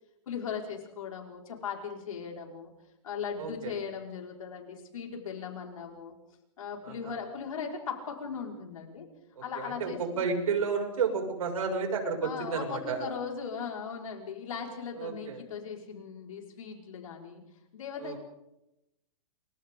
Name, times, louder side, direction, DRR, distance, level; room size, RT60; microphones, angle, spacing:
voice 1, 0.3-2.7 3.0-6.2 6.6-9.1 9.4-10.3 12.2-18.2, left 6 dB, 80° left, 0 dB, 5.4 m, -38 dB
voice 2, 3.4-3.7 6.8-7.1 9.6-9.9 10.2-13.1 15.0-15.4 18.0-18.2, right 5 dB, 80° right, 3 dB, 6.6 m, -31 dB
29.0 x 24.0 x 3.9 m, 0.89 s
hypercardioid pair, 170°, 17 cm